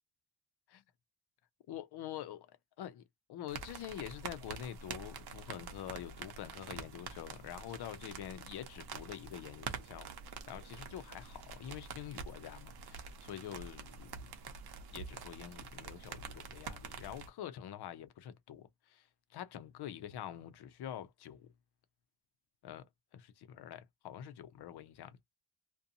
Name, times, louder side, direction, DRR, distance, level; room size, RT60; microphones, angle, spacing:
voice 1, 1.7-2.5 2.8-10.1 10.5-14.3 14.9-21.5 22.6-22.9 23.1-25.2, left 11 dB, 85° left, 0.6 m, -46 dB
sound 1, 3.5-17.3, right 6 dB, 85° right, 0.7 m, -47 dB
2.6 x 2.2 x 2.6 m
wide cardioid pair, 150°, 38 cm